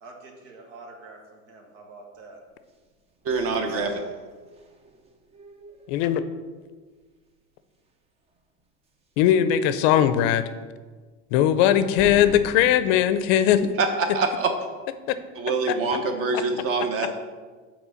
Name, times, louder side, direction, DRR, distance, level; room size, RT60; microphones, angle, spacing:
voice 1, 0.0-2.4, right 3 dB, 75° right, 2 dB, 1.6 m, -46 dB
sound 1, 2.7-6.6 7.0-7.1 7.5-7.9 8.3-8.4 8.9-9.0 12.0-14.6, right 2 dB, 15° right, 0.5 m, -44 dB
voice 2, 3.2-4.0 13.8-14.5 15.4-17.1, right 4 dB, 35° right, 5 dB, 1.0 m, -25 dB
voice 3, 5.9-6.2 9.2-10.4 11.3-13.7 15.1-15.2 15.7-15.8, left 10 dB, 55° left, 12 dB, 0.5 m, -19 dB
5.8 x 4.4 x 5.6 m, 1.4 s
supercardioid pair, 130°, 39 cm